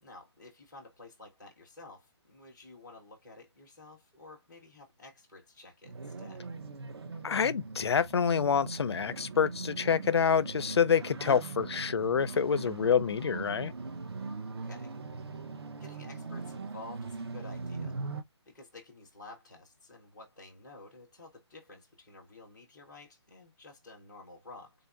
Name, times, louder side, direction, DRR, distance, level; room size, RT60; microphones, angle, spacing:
voice 1, 0.0-6.4 14.6-14.9 15.8-17.9 18.5-24.7, left 2 dB, ahead, 0.3 m, -51 dB
sound 1, 5.9-18.2, right 4 dB, 60° right, 0.7 m, -41 dB
voice 2, 7.2-13.7, left 7 dB, 65° left, 0.4 m, -27 dB
3.9 x 2.6 x 3.4 m
hypercardioid pair, 175°, 15 cm